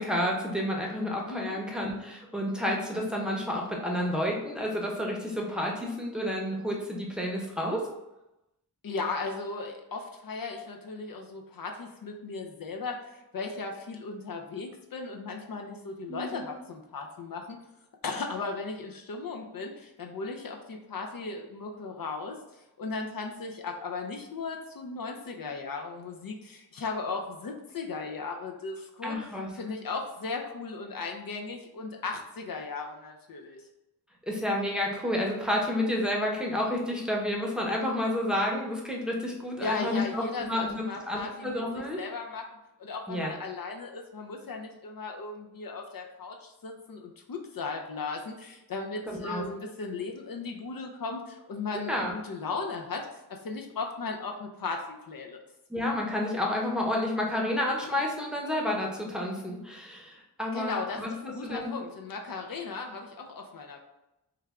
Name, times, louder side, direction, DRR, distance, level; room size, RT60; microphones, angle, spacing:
voice 1, 0.0-7.8 16.1-16.4 29.0-29.5 34.3-42.0 43.1-43.3 49.1-49.4 51.9-52.1 55.7-61.7, left 1 dB, ahead, -2 dB, 0.7 m, -30 dB
voice 2, 8.8-17.6 18.0-33.6 39.6-42.5 42.8-53.0 53.3-55.4 60.5-63.8, left 4 dB, 60° left, 2 dB, 0.5 m, -37 dB
3.3 x 2.2 x 3.5 m, 0.93 s
wide cardioid pair, 65°, 40 cm